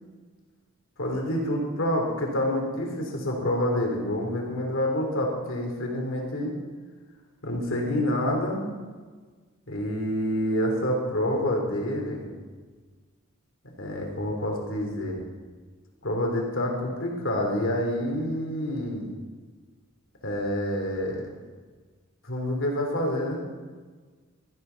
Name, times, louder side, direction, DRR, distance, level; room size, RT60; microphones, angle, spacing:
voice 1, 1.0-6.6 7.4-8.6 9.7-12.3 13.8-15.2 16.0-19.0 20.2-21.3 22.2-23.4, left 1 dB, 65° left, 1 dB, 3.1 m, -27 dB
16.5 x 14.0 x 4.0 m, 1.4 s
head